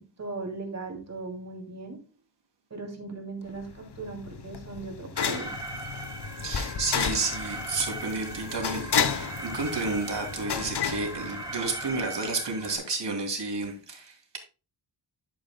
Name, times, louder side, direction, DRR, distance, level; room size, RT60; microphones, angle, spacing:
voice 1, 0.0-2.0 2.7-5.6, right 3 dB, 35° right, 2.7 m, -38 dB
sound 1, 3.6-11.9, left 7 dB, 60° left, 0.9 m, -32 dB
Alarm, 5.2-12.8, right 2 dB, 10° right, 2.4 m, -39 dB
voice 2, 6.4-14.4, right 3 dB, 65° right, 2.9 m, -31 dB
10.5 x 9.4 x 2.2 m
wide cardioid pair, 120°, 45 cm